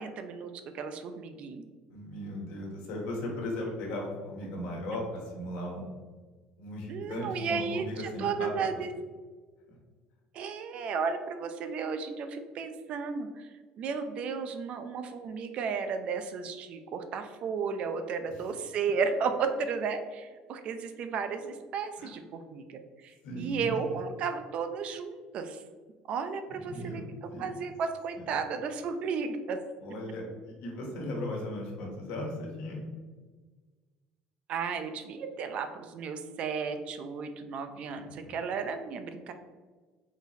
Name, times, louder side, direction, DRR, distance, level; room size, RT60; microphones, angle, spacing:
voice 1, 0.0-1.7 6.9-8.9 10.3-13.5 13.8-25.6 26.1-29.6 34.5-39.3, right 5 dB, 45° right, 8 dB, 0.4 m, -34 dB
voice 2, 1.9-5.9 6.6-8.5 22.0-22.1 23.2-24.0 26.5-27.6 28.1-28.2 29.8-32.8 37.9-38.4, left 1 dB, 70° left, 0 dB, 1.3 m, -37 dB
3.9 x 3.0 x 4.0 m, 1.4 s
cardioid pair, 160°, 3 cm